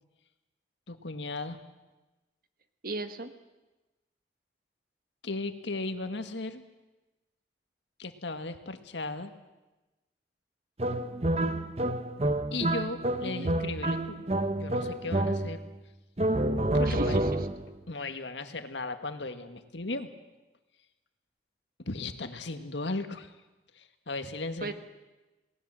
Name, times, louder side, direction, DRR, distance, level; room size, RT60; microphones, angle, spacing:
voice 1, 0.9-1.6 5.2-6.6 8.0-9.3 12.5-14.3 14.6-15.6 16.7-17.2 17.9-20.1 21.8-23.3 23.8-24.7, left 2 dB, 80° left, 8 dB, 1.8 m, -36 dB
voice 2, 2.8-3.3 11.1-11.7 13.3-13.5 16.8-17.3 24.6-24.7, right 2 dB, 50° right, 9 dB, 1.6 m, -37 dB
sound 1, 10.8-15.8 16.2-17.7, right 1 dB, 35° right, 1.1 m, -29 dB
28.5 x 19.5 x 7.7 m, 1.1 s
head